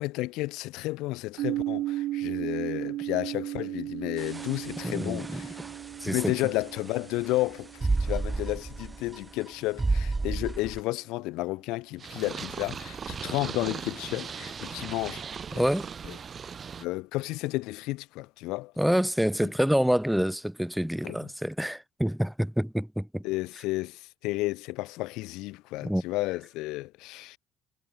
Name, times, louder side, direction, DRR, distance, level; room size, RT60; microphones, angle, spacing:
voice 1, 0.0-5.6 6.0-15.2 15.5-15.7 16.0-16.2 16.8-18.7 19.4-19.5 21.0-21.3 23.2-27.4, left 20 dB, 80° left, 3.1 m, -32 dB
sound 1, 1.4-9.2, right 15 dB, 70° right, 6.5 m, -35 dB
sound 2, 4.2-10.8, right 3 dB, 15° right, 3.2 m, -32 dB
voice 2, 4.8-5.4 6.0-6.2 15.6-15.9 18.8-23.2 25.8-26.0, equal, ahead, 0.9 m, -27 dB
Purr, 12.0-16.9, right 6 dB, 35° right, 4.2 m, -38 dB
cardioid pair, 105°, 0 cm